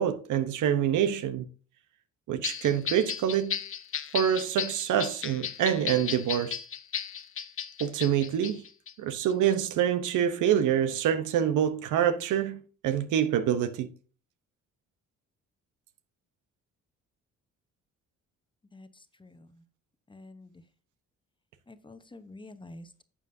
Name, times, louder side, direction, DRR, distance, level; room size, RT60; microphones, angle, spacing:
voice 1, 0.0-1.4 2.3-3.6 4.1-6.6 7.8-8.6 9.0-13.9, right 9 dB, 80° right, 0.9 m, -26 dB
sound 1, 2.4-8.9 9.3-9.5, left 8 dB, 45° left, 0.8 m, -35 dB
voice 2, 18.7-19.6 20.1-20.6 21.7-23.0, left 2 dB, 15° left, 0.9 m, -49 dB
11.0 x 7.1 x 2.7 m
cardioid pair, 90°, 30 cm